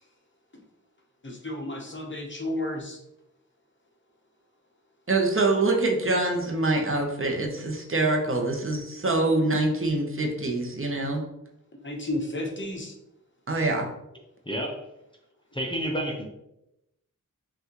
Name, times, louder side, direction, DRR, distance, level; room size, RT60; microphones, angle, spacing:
voice 1, 1.2-3.0 11.8-12.9, left 1 dB, 35° left, 1 dB, 0.9 m, -32 dB
voice 2, 5.1-11.2 13.5-13.8, right 2 dB, 40° right, 1 dB, 0.9 m, -25 dB
voice 3, 14.5-14.8 15.5-16.3, equal, 15° left, -1 dB, 0.6 m, -29 dB
5.6 x 2.5 x 3.0 m, 0.88 s
wide cardioid pair, 80°, 32 cm